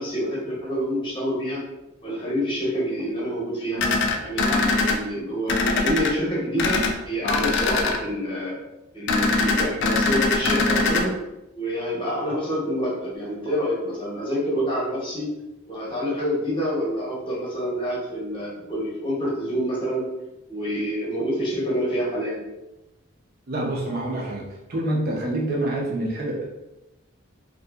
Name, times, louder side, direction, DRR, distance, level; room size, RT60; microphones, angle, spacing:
voice 1, 0.0-1.6 2.0-3.8 4.2-8.6 8.9-11.1 11.6-15.3 15.7-20.0 20.5-22.4, equal, 25° left, -6 dB, 0.8 m, -27 dB
sound 1, 3.8-4.9 5.5-6.1 6.6-6.9 7.2-8.0 9.1-11.0, left 3 dB, 55° left, 0.3 m, -22 dB
voice 2, 23.5-24.4 24.7-26.5, right 1 dB, 45° right, -1 dB, 0.4 m, -26 dB
2.6 x 2.5 x 2.3 m, 0.95 s
head